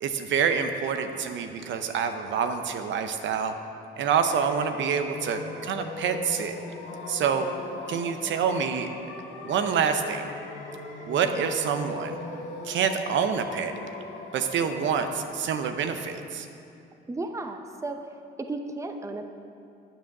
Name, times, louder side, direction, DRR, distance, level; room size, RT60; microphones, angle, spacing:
voice 1, 0.0-3.5 4.0-6.6 7.1-7.5 7.9-8.9 9.4-10.3 11.1-12.2 12.6-13.7 14.3-16.5, right 7 dB, 70° right, 7 dB, 0.7 m, -27 dB
sound 1, 4.3-15.2, left 3 dB, 85° left, 1.5 m, -39 dB
voice 2, 17.1-18.0 18.4-19.3, right 2 dB, 15° right, 6 dB, 0.7 m, -34 dB
9.0 x 7.0 x 5.9 m, 2.6 s
cardioid pair, 90°, 20 cm